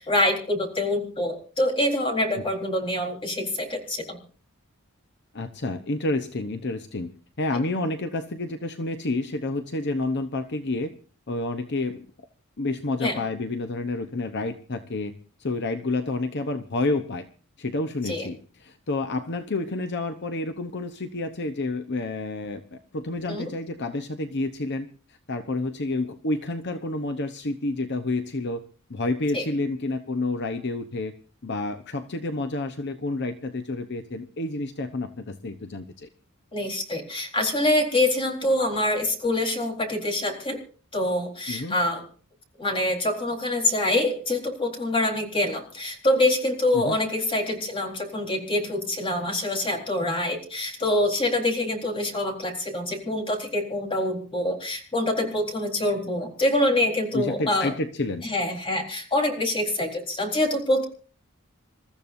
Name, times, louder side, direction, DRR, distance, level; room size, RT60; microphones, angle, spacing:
voice 1, 0.0-4.2 13.0-13.2 18.1-18.3 23.3-23.4 29.3-29.4 36.5-40.6 40.9-42.0 42.6-57.7 58.2-60.8, left 1 dB, 25° left, 2 dB, 4.0 m, -25 dB
voice 2, 5.3-7.1 7.4-10.9 11.3-12.3 12.6-15.1 15.4-17.3 17.6-28.6 28.9-31.1 31.4-36.1 41.5-41.8 46.7-47.0 57.1-58.2, left 2 dB, 55° left, 7 dB, 0.9 m, -29 dB
28.0 x 14.0 x 2.7 m, 0.40 s
head